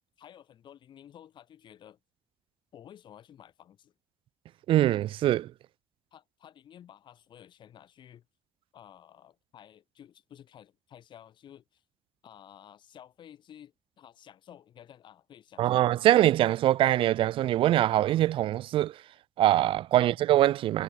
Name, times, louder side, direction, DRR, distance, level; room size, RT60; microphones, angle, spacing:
voice 1, 0.0-2.0 2.7-3.9 6.1-8.3 8.7-11.8 12.2-15.8 19.9-20.2, left 10 dB, 60° left, 6.9 m, -52 dB
voice 2, 4.7-5.5 15.6-19.0 19.4-20.8, right 13 dB, 75° right, 1.0 m, -23 dB
cardioid pair, 125°, 9 cm